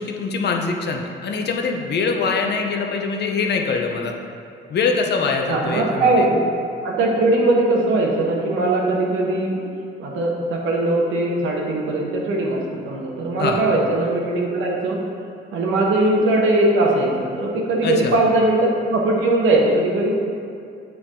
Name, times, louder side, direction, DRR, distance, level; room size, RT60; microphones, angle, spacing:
voice 1, 0.0-4.1 4.7-6.3 13.4-13.6 17.8-18.2, left 4 dB, 60° left, 2 dB, 0.8 m, -23 dB
voice 2, 5.5-6.4 6.8-9.6 10.0-15.0 15.5-20.1, right 2 dB, 85° right, -1 dB, 1.1 m, -20 dB
7.7 x 4.7 x 3.7 m, 2.4 s
cardioid pair, 90°, 20 cm